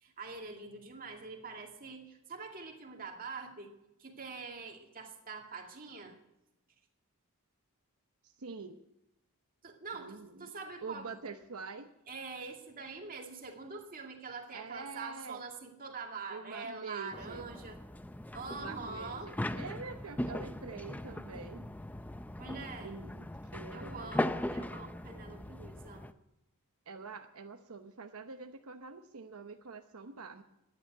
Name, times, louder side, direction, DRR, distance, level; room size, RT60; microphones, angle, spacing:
voice 1, 0.0-6.2 9.6-11.1 12.1-17.8 18.3-19.3 22.4-23.0 23.7-26.1, right 4 dB, 40° right, 3 dB, 2.2 m, -44 dB
voice 2, 8.2-8.8 9.9-10.5 10.8-11.9 14.5-15.4 16.3-17.4 18.5-21.7 22.8-24.1 26.9-30.4, right 4 dB, 75° right, 6 dB, 0.9 m, -46 dB
sound 1, 17.1-26.1, left 1 dB, 5° left, 0.5 m, -39 dB
14.0 x 10.0 x 9.3 m, 0.89 s
head